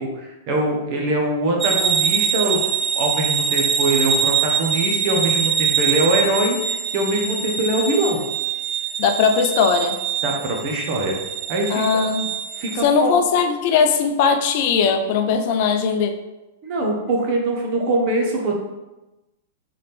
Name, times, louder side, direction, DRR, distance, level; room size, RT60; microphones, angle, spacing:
voice 1, 0.0-2.6 2.9-8.2 10.2-11.2 11.5-12.1 12.6-13.2 16.6-18.5, right 2 dB, 50° right, 0 dB, 1.2 m, -23 dB
sound 1, 1.6-12.8, right 7 dB, 25° right, 0.4 m, -23 dB
voice 2, 9.0-10.0 11.7-12.2 12.8-16.1, left 6 dB, 50° left, 6 dB, 0.5 m, -19 dB
4.1 x 3.8 x 3.4 m, 1.0 s
hypercardioid pair, 105°, 0 cm